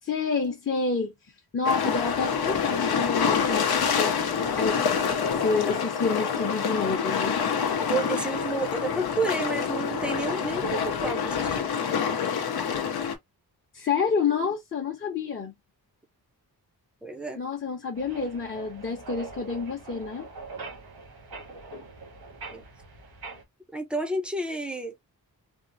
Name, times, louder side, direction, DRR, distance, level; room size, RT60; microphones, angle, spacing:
voice 1, 0.0-1.1 1.5-4.2 4.6-4.7 5.3-7.3 13.7-15.5 17.4-20.3, left 5 dB, 30° left, 0.8 m, -28 dB
sound 1, 1.6-13.1, left 6 dB, 75° left, 0.7 m, -26 dB
voice 2, 7.9-11.7 17.0-17.4 22.5-22.7 23.7-25.0, right 2 dB, 5° right, 0.5 m, -30 dB
sound 2, 17.9-23.4, right 3 dB, 80° right, 1.3 m, -42 dB
3.5 x 2.0 x 2.5 m
wide cardioid pair, 160°, 38 cm